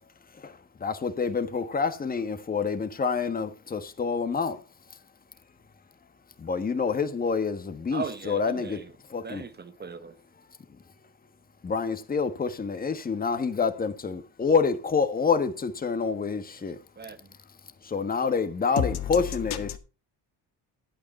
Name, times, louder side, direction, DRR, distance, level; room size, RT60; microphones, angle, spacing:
voice 1, 0.3-4.6 4.9-5.0 6.4-8.8 9.1-9.4 10.7-10.8 11.6-16.8 17.8-19.7, left 5 dB, 20° left, 1.5 m, -27 dB
voice 2, 7.9-8.9 9.2-10.2 17.0-17.3, right 5 dB, 25° right, 1.0 m, -38 dB
voice 3, 18.8-19.8, left 10 dB, 65° left, 1.9 m, -30 dB
12.0 x 8.5 x 4.3 m
cardioid pair, 125°, 41 cm